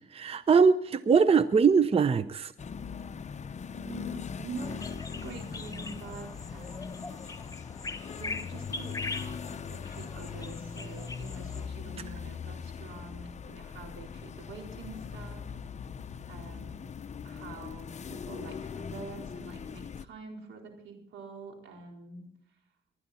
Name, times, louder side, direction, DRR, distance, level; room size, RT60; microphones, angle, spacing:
voice 1, 0.1-2.5, right 5 dB, 30° right, 13 dB, 0.7 m, -22 dB
sound 1, 2.6-20.0, left 6 dB, 35° left, 0.7 m, -40 dB
voice 2, 3.7-7.1 8.2-15.5 16.3-16.8 17.2-22.3, right 4 dB, 80° right, 1 dB, 4.3 m, -46 dB
Calm atmosphere small forest Senegal, 4.6-11.7, left 3 dB, 15° left, 1.1 m, -42 dB
19.5 x 12.5 x 4.3 m, 0.70 s
cardioid pair, 90°, 20 cm